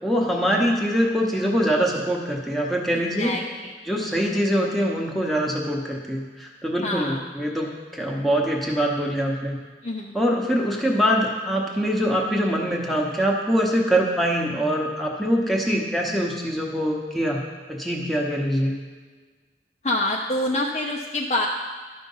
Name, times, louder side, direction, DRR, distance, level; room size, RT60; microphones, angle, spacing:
voice 1, 0.0-3.4 3.8-9.6 10.1-17.4 17.7-18.7, equal, ahead, -2 dB, 1.0 m, -23 dB
voice 2, 2.9-3.7 6.8-7.2 9.8-10.2 19.8-21.5, left 1 dB, 40° left, -1 dB, 0.6 m, -26 dB
12.0 x 5.2 x 5.5 m, 1.4 s
head